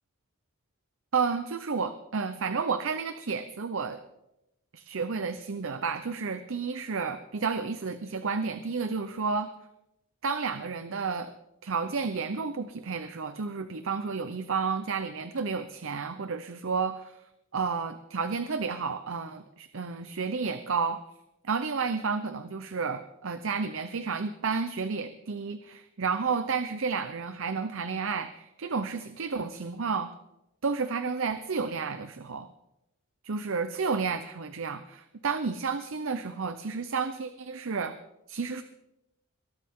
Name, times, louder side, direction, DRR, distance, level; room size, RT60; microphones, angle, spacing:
voice 1, 1.1-4.0 4.7-9.5 10.2-11.3 11.6-17.2 17.5-21.0 21.4-30.1 30.6-32.5 33.3-38.0 38.3-38.6, right 5 dB, 65° right, 10 dB, 0.7 m, -31 dB
22.5 x 12.5 x 3.7 m, 0.88 s
head